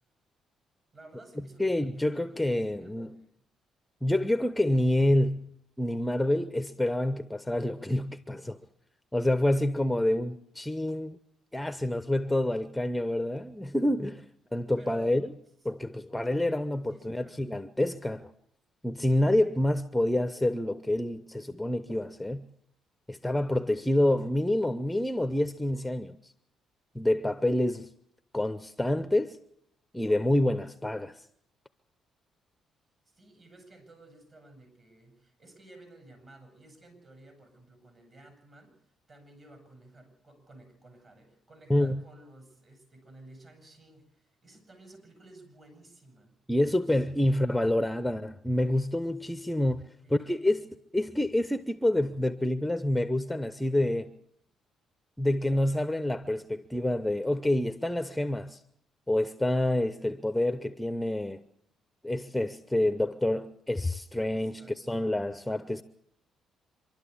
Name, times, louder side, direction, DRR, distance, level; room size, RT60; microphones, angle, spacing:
voice 1, 0.9-2.4 2.8-3.3 14.8-15.2 16.9-17.5 33.1-46.3 46.8-47.9 50.0-50.7 64.3-65.0, right 2 dB, 40° right, 7.3 m, -54 dB
voice 2, 1.6-3.2 4.0-5.5 5.8-8.6 9.1-11.2 11.5-14.2 14.5-15.3 15.6-18.3 18.8-22.5 23.1-26.3 26.9-27.9 28.3-29.4 29.9-31.3 41.7-42.0 46.5-49.8 50.1-50.7 50.9-54.1 55.2-58.6 59.1-61.4 62.0-65.8, left 1 dB, 5° left, 0.8 m, -27 dB
26.0 x 12.0 x 8.4 m
cardioid pair, 90°, 0 cm